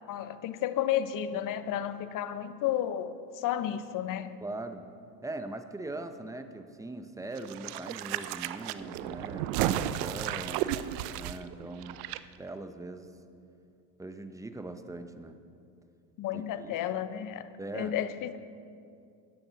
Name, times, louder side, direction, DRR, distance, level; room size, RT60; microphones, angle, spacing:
voice 1, 0.1-4.4 16.2-17.5 17.7-18.4, left 10 dB, 45° left, 0.7 m, -32 dB
voice 2, 4.4-4.8 5.2-10.6 11.1-12.0 12.4-13.1 14.0-15.4 16.3-16.8 17.6-17.9, right 2 dB, 5° right, 0.6 m, -41 dB
sound 1, 7.3-12.2 12.5-12.6, right 12 dB, 75° right, 0.6 m, -33 dB
14.0 x 10.0 x 4.0 m
supercardioid pair, 95°, 47 cm